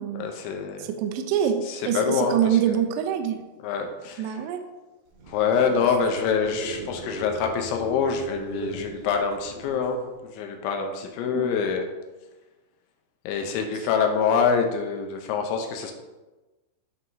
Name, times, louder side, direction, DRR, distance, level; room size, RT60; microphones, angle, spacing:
voice 1, 0.1-0.9 1.6-2.8 3.6-4.4 5.3-11.9 13.3-15.9, left 6 dB, 85° left, 4 dB, 2.9 m, -26 dB
voice 2, 0.8-3.4 4.2-4.6 11.3-11.5, right 9 dB, 85° right, 5 dB, 2.4 m, -25 dB
sound 1, 5.1-10.2, right 2 dB, 70° right, 2.3 m, -39 dB
10.5 x 3.7 x 2.6 m, 1.1 s
omnidirectional pair, 5.4 m